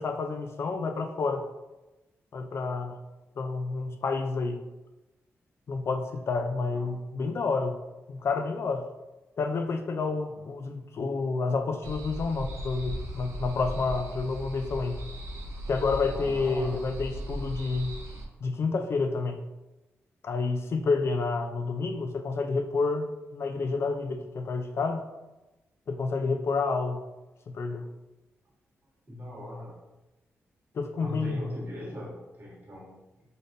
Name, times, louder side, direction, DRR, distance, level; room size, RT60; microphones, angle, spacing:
voice 1, 0.0-1.5 2.3-3.0 3.4-4.6 5.7-7.8 8.1-8.9 9.4-15.0 15.7-18.0 18.4-19.4 20.2-23.1 23.3-25.1 25.9-27.0 27.5-27.9 30.7-31.4, left 4 dB, 60° left, 6 dB, 0.5 m, -29 dB
voice 2, 10.0-10.4 16.0-16.9 29.1-29.8 31.0-33.0, left 1 dB, 40° right, -4 dB, 1.5 m, -40 dB
sound 1, 11.8-18.2, equal, 75° right, 0.7 m, -37 dB
4.0 x 3.4 x 2.6 m, 1.0 s
cardioid pair, 85°, 5 cm